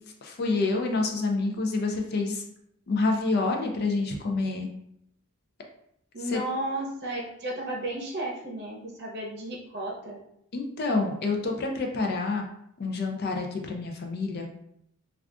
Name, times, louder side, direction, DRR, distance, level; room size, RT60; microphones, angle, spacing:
voice 1, 0.2-2.4 2.9-4.7 6.3-6.4 10.5-12.4 12.8-14.5, left 3 dB, 45° left, 2 dB, 0.4 m, -27 dB
voice 2, 6.1-10.2, right 1 dB, 50° right, -2 dB, 0.7 m, -33 dB
2.4 x 2.3 x 3.5 m, 0.75 s
head